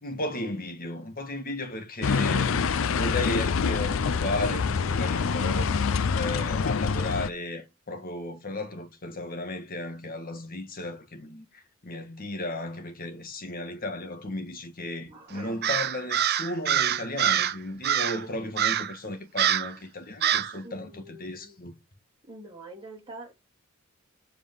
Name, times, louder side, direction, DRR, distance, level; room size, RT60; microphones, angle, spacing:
voice 1, 0.0-5.7 6.1-21.7, left 1 dB, 45° left, 1.7 m, -35 dB
sound 1, 2.0-7.3, left 5 dB, 70° left, 0.5 m, -26 dB
voice 2, 15.1-15.6 20.6-21.6 22.3-23.3, right 2 dB, 25° right, 3.1 m, -45 dB
Crow, 15.6-17.6 17.8-18.2 18.6-18.9 19.4-19.7 20.2-20.5, right 10 dB, 50° right, 0.7 m, -25 dB
7.6 x 5.1 x 5.4 m
head